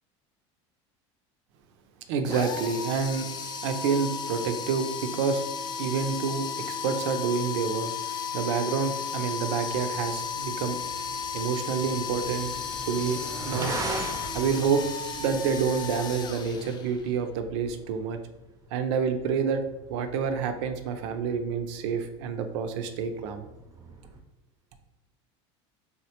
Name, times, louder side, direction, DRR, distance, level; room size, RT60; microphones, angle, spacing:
voice 1, 2.1-3.3 3.6-5.5 5.8-10.8 11.3-12.6 12.9-13.8 14.3-14.9 15.2-18.2 18.7-19.6 19.9-23.4, right 6 dB, 75° right, 8 dB, 0.4 m, -28 dB
sound 1, 2.2-17.1, left 6 dB, 30° left, 0.4 m, -34 dB
sound 2, 10.2-24.2, right 2 dB, 25° right, 0.5 m, -42 dB
3.5 x 2.1 x 2.8 m, 1.0 s
supercardioid pair, 110°, 15 cm